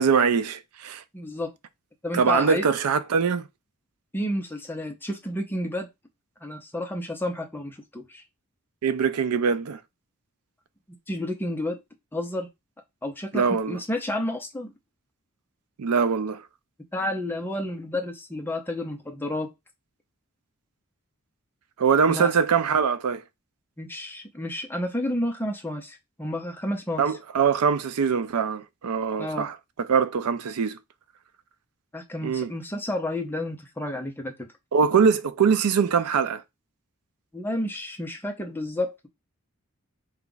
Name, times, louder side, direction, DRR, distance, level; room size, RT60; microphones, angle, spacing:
voice 1, 0.0-1.0 2.1-3.4 8.8-9.8 13.3-13.8 15.8-16.4 21.8-23.2 27.0-29.5 29.9-30.8 32.2-32.5 34.7-36.4, right 6 dB, 85° right, 0.5 m, -22 dB
voice 2, 1.1-1.5 2.0-2.7 4.1-5.9 6.4-8.2 11.1-11.8 12.1-12.5 13.0-14.7 16.9-19.5 22.1-22.3 23.8-27.1 29.2-29.5 31.9-34.5 37.3-39.1, left 1 dB, 10° left, 0.6 m, -31 dB
4.6 x 2.4 x 3.8 m
head